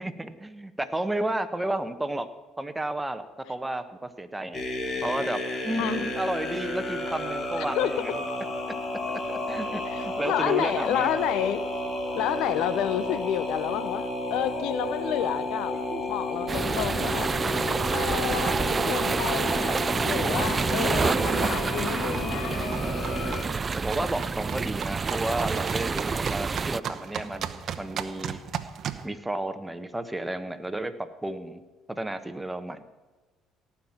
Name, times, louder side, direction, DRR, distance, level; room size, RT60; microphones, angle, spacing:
voice 1, 0.0-2.3 2.6-4.6 5.0-8.2 9.1-11.2 15.9-16.0 20.4-20.6 23.8-28.4 29.0-31.6 31.9-32.8, right 1 dB, 10° right, 10 dB, 1.2 m, -32 dB
sound 1, 4.5-23.4, left 1 dB, 40° left, 3.0 m, -32 dB
voice 2, 9.8-11.6 12.1-15.8 16.1-17.3 17.9-23.2, left 11 dB, 70° left, 15 dB, 0.7 m, -30 dB
sound 2, 16.5-26.8, right 5 dB, 35° right, 0.3 m, -28 dB
sound 3, 18.7-29.1, right 8 dB, 55° right, 0.9 m, -38 dB
17.5 x 5.9 x 8.9 m, 1.2 s
supercardioid pair, 70°, 0 cm